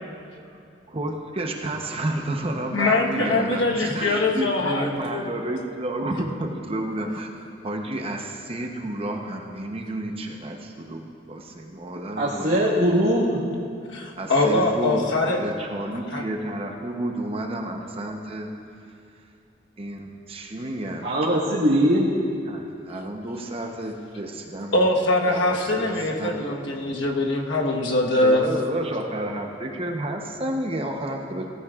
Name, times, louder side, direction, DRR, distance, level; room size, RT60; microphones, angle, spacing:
voice 1, 0.9-7.3 7.6-12.6 14.2-18.5 19.8-21.1 22.5-24.9 25.3-26.8 28.2-31.5, right 1 dB, 30° right, 2 dB, 0.8 m, -31 dB
voice 2, 2.7-5.2 13.9-15.4 16.1-16.2 24.7-28.4, left 2 dB, 80° left, 0 dB, 1.2 m, -22 dB
voice 3, 12.2-13.4 21.0-22.1, equal, 65° right, -9 dB, 1.6 m, -21 dB
16.0 x 14.5 x 2.4 m, 2.5 s
head